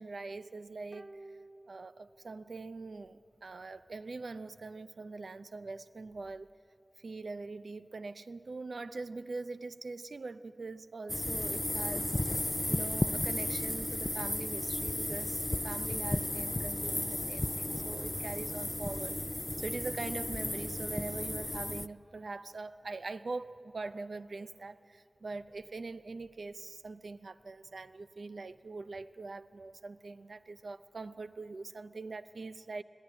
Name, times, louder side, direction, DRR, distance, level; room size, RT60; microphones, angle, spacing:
voice 1, 0.0-1.4 1.7-6.5 7.0-32.8, right 3 dB, 85° right, 13 dB, 0.5 m, -43 dB
sound 1, 0.9-2.6 2.8-2.9, right 2 dB, 15° right, 0.7 m, -53 dB
sound 2, 11.1-21.9, left 1 dB, 25° left, 0.4 m, -34 dB
21.0 x 15.0 x 8.8 m, 2.8 s
wide cardioid pair, 55°, 0 cm